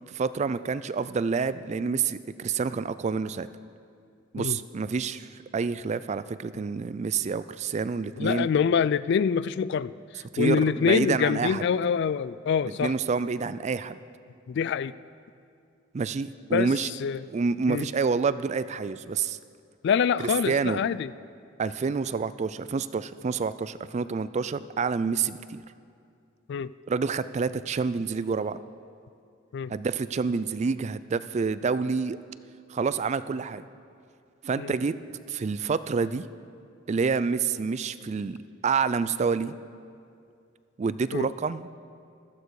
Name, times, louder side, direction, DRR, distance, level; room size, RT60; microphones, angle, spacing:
voice 1, 0.1-3.5 4.3-5.3 5.5-8.5 10.3-11.6 12.7-13.9 15.9-16.9 17.3-19.4 20.5-20.8 21.6-25.6 26.9-28.6 29.7-32.2 32.7-33.6 34.4-35.0 35.3-36.3 36.9-38.4 38.6-39.5 40.8-41.7, right 5 dB, 35° right, 15 dB, 0.3 m, -28 dB
voice 2, 8.2-9.9 10.4-12.9 14.5-14.9 16.5-16.7 17.0-17.2 17.7-17.9 19.8-21.1 26.5-26.7 29.5-29.7 34.6-34.7 41.1-41.3, left 7 dB, 60° left, 17 dB, 0.3 m, -25 dB
14.5 x 13.0 x 4.8 m, 2.4 s
head